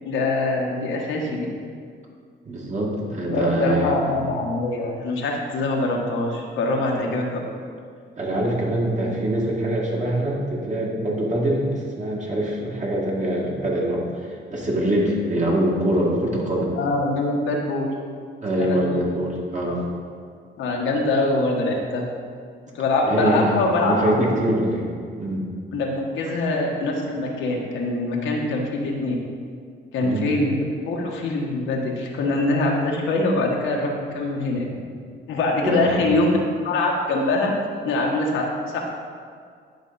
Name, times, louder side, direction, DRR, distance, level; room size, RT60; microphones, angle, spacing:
voice 1, 0.0-1.4 3.3-7.4 16.8-17.9 18.6-19.0 19.7-19.8 20.6-22.1 22.7-24.1 25.7-29.1 29.9-34.6 35.3-36.3 36.6-37.5 37.8-38.8, left 2 dB, 85° left, -1 dB, 1.3 m, -23 dB
voice 2, 2.5-4.1 8.2-16.7 18.4-19.8 23.0-24.9 25.2-25.5 30.0-30.3 35.6-36.0, right 1 dB, 35° right, -3 dB, 2.0 m, -24 dB
10.5 x 4.4 x 4.1 m, 2.1 s
cardioid pair, 90°, 20 cm